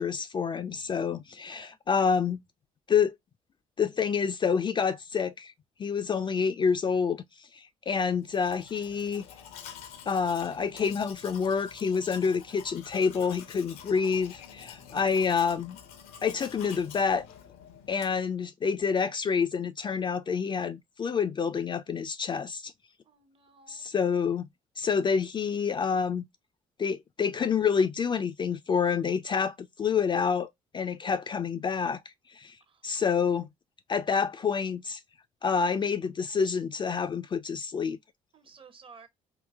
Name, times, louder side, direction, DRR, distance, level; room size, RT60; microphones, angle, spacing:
voice 1, 0.0-2.4 2.9-3.1 3.8-5.5 5.8-9.2 10.1-15.8 16.2-17.3 17.9-22.7 23.7-24.5 24.8-26.2 26.8-32.0 32.3-32.5 32.8-33.5 33.9-35.0 35.4-38.0, left 6 dB, 30° left, 0.4 m, -28 dB
Domestic sounds home sounds, 8.2-18.3, left 8 dB, 70° left, 0.6 m, -48 dB
voice 2, 23.0-23.8 38.3-39.1, right 5 dB, 35° right, 0.7 m, -53 dB
3.8 x 2.1 x 2.2 m
hypercardioid pair, 50°, 16 cm